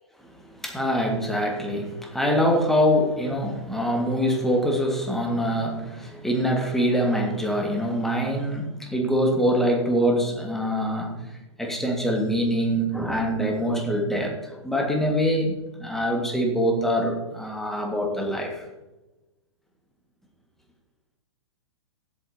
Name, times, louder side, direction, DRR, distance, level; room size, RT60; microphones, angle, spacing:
voice 1, 0.6-11.3 11.6-18.6, equal, ahead, 2 dB, 1.8 m, -24 dB
15.5 x 8.5 x 2.9 m, 1.1 s
figure-of-eight pair, 110°, 14 cm